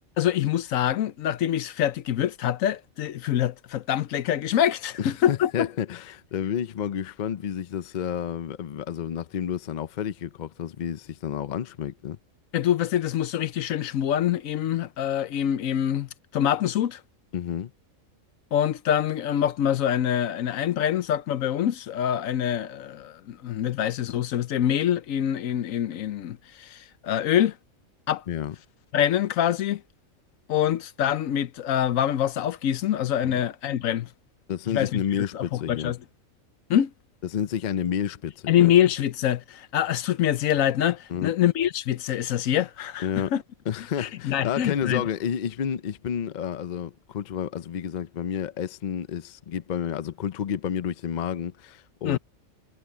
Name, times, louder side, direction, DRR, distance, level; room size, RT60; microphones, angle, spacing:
voice 1, 0.2-5.7 12.5-17.0 18.5-27.6 28.1-28.2 28.9-29.8 30.5-34.1 34.7-35.0 35.3-36.0 36.7-36.9 38.5-43.4 44.0-45.0 52.0-52.2, left 10 dB, 75° left, 1.1 m, -25 dB
voice 2, 5.0-12.2 17.3-17.7 28.3-28.5 33.2-33.4 34.5-35.9 37.2-38.7 41.1-41.3 43.0-43.3 43.7-52.2, left 8 dB, 55° left, 0.5 m, -30 dB
omnidirectional pair, 1.4 m